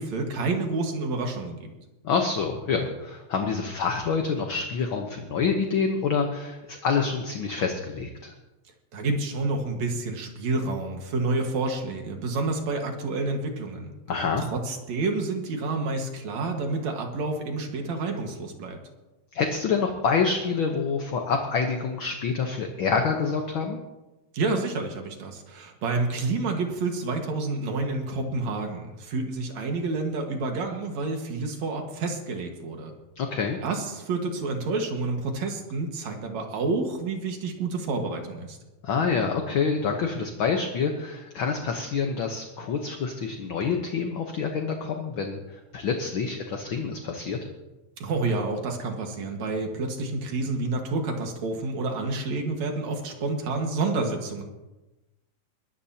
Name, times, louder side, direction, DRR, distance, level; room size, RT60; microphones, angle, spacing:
voice 1, 0.0-1.7 8.9-13.9 14.4-18.8 24.3-33.0 33.6-38.6 48.0-54.4, right 3 dB, 70° right, 3 dB, 2.9 m, -29 dB
voice 2, 2.0-8.3 14.1-14.4 19.3-23.8 33.2-33.6 38.8-47.4, left 5 dB, 60° left, 3 dB, 1.5 m, -27 dB
21.5 x 13.5 x 2.9 m, 1.1 s
omnidirectional pair, 3.4 m